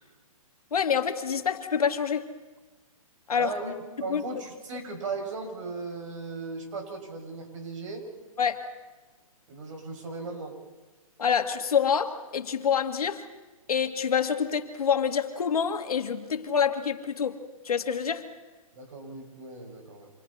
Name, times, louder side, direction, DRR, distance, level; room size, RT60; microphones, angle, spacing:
voice 1, 0.7-2.3 3.3-3.5 4.1-4.2 8.4-8.6 11.2-13.2 13.7-17.4 17.6-18.2, left 7 dB, 85° left, 6 dB, 2.1 m, -26 dB
voice 2, 3.4-3.7 4.0-8.1 9.5-10.6 18.7-20.1, right 3 dB, 60° right, 3 dB, 6.6 m, -37 dB
29.5 x 27.0 x 4.3 m, 1.2 s
hypercardioid pair, 155°, 18 cm